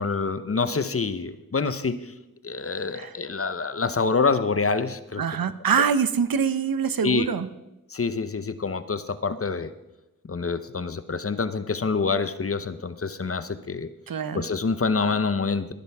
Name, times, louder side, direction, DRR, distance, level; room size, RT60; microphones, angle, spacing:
voice 1, 0.0-2.1 2.4-5.2 7.0-7.3 7.9-9.7 10.3-13.9 14.3-15.7, left 4 dB, 40° left, 12 dB, 0.8 m, -26 dB
voice 2, 5.2-7.5 14.1-14.5, right 6 dB, 75° right, 13 dB, 0.8 m, -24 dB
20.5 x 10.0 x 3.5 m, 0.95 s
cardioid pair, 55°, 36 cm